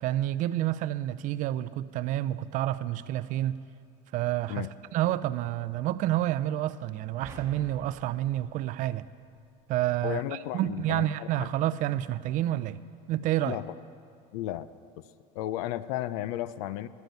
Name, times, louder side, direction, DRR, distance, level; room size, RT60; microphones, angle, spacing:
voice 1, 0.0-3.6 4.1-4.7 4.9-9.1 9.7-12.8 13.1-13.6, right 13 dB, 45° right, 14 dB, 0.4 m, -29 dB
sound 1, 7.2-9.6, right 3 dB, 15° right, 1.2 m, -50 dB
voice 2, 10.0-11.5 13.4-13.7 14.3-14.7 15.0-15.1 15.3-16.9, left 13 dB, 80° left, 16 dB, 0.5 m, -34 dB
11.5 x 7.9 x 9.1 m, 2.4 s
supercardioid pair, 135°, 19 cm